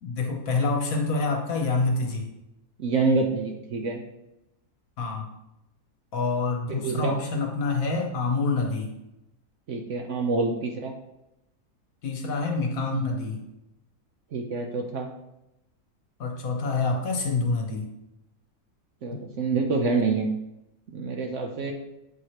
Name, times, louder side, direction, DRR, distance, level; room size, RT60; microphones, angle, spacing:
voice 1, 0.0-2.3 5.0-5.3 6.1-8.9 12.0-13.4 16.2-17.9 19.1-19.2, left 3 dB, 60° left, 1 dB, 1.3 m, -27 dB
voice 2, 2.8-4.0 6.8-7.2 9.7-10.9 12.9-13.0 14.3-15.1 19.0-20.3 20.9-21.7, right 4 dB, 60° right, 2 dB, 0.9 m, -26 dB
7.9 x 4.7 x 3.0 m, 0.89 s
omnidirectional pair, 1.7 m